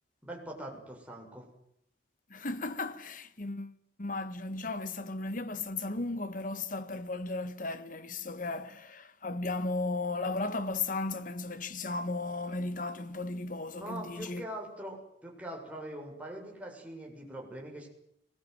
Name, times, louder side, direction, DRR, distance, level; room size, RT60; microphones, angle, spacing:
voice 1, 0.2-1.5 13.8-17.9, right 1 dB, 10° right, 7.1 m, -42 dB
voice 2, 2.3-14.5, left 3 dB, 50° left, 1.7 m, -35 dB
23.0 x 20.5 x 9.6 m
head